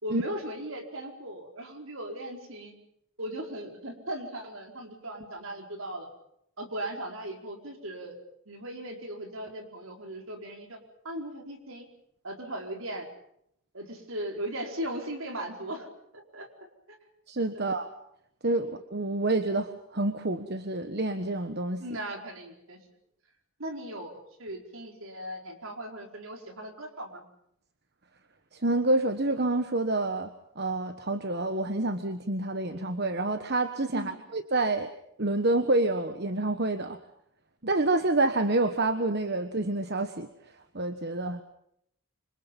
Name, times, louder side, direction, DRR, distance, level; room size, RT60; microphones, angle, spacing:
voice 1, 0.0-2.7 3.2-6.1 6.6-8.2 8.5-10.8 11.0-11.9 12.2-13.1 13.7-16.5 16.9-17.0 17.5-17.7 21.8-22.8 23.6-24.1 24.4-27.2 33.9-34.2, right 1 dB, 65° right, 3 dB, 4.7 m, -38 dB
voice 2, 17.3-17.9 18.4-21.8 28.5-30.3 30.6-34.9 35.2-37.0 37.6-40.3 40.7-41.4, right 2 dB, 50° right, 9 dB, 1.3 m, -28 dB
26.5 x 26.0 x 5.5 m, 0.72 s
head